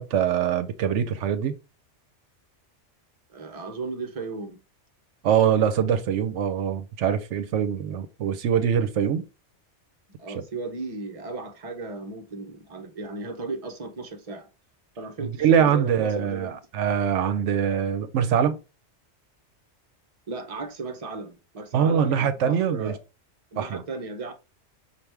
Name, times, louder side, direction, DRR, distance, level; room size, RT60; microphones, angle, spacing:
voice 1, 0.0-1.5 5.2-9.2 10.3-10.4 15.2-18.6 21.7-23.0 23.6-23.8, right 8 dB, 80° right, 0.9 m, -23 dB
voice 2, 3.3-4.6 10.2-14.5 15.0-16.6 20.3-23.0 23.5-24.3, right 3 dB, 35° right, 0.8 m, -35 dB
5.8 x 2.4 x 3.3 m
omnidirectional pair, 1.2 m